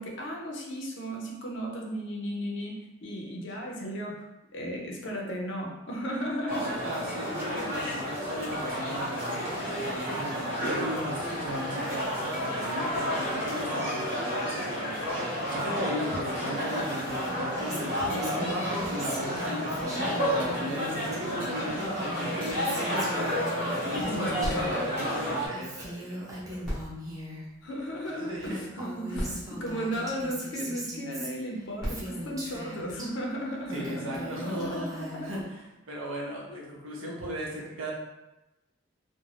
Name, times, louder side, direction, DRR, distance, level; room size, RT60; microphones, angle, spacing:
voice 1, 0.0-4.2 4.5-6.8 9.6-9.8 24.1-24.9 27.6-35.3, equal, 60° left, 0 dB, 0.5 m, -35 dB
sound 1, 6.5-25.5, equal, 40° right, 0.9 m, -31 dB
voice 2, 6.8-26.8 27.6-28.6 33.7-37.9, equal, 70° right, -3 dB, 0.7 m, -37 dB
Female speech woman speaking, 17.6-21.2 21.4-24.8 25.0-27.4 28.1-28.2 28.4-33.1 33.5-35.4, right 1 dB, 15° right, 0.4 m, -39 dB
sound 2, 24.4-26.1 26.6-28.2 28.9-29.0 29.1-30.7 31.5-33.4 34.1-34.2, equal, ahead, 0.8 m, -40 dB
2.4 x 2.1 x 3.2 m, 0.99 s
head